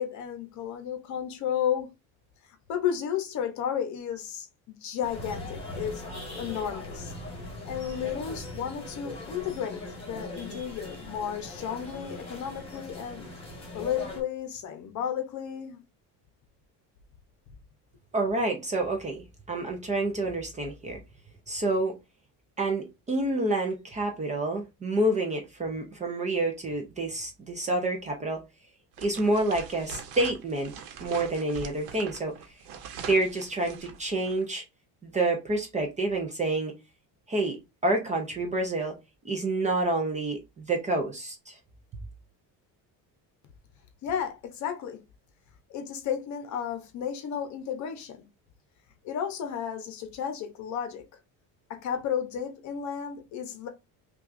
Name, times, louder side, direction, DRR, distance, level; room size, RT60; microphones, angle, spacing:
voice 1, 0.0-1.9 2.7-6.1 6.4-7.1 7.6-13.3 13.7-15.8 44.0-45.0 45.7-48.2 49.0-51.1 51.7-53.7, left 8 dB, 45° left, 0.7 m, -33 dB
sound 1, 5.0-14.2, left 1 dB, 15° left, 1.3 m, -40 dB
voice 2, 18.1-21.0 21.5-21.9 22.6-28.4 29.0-30.7 31.0-32.3 33.0-34.6 35.0-36.7 37.3-37.6 37.8-39.0 39.2-41.6, right 2 dB, 20° right, 0.4 m, -28 dB
sound 2, 28.9-34.4, right 6 dB, 85° right, 0.9 m, -43 dB
5.7 x 2.4 x 2.5 m
cardioid pair, 170°, 40 cm